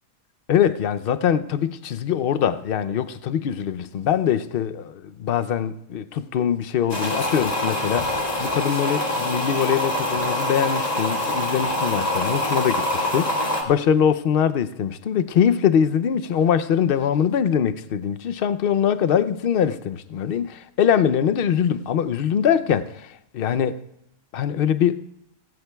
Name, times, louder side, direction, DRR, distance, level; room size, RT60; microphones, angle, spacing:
voice 1, 0.5-23.8 24.3-25.0, left 8 dB, 60° left, 0.6 m, -23 dB
sound 1, 6.9-13.6, left 1 dB, 30° left, 1.9 m, -25 dB
16.5 x 16.0 x 2.3 m
omnidirectional pair, 1.4 m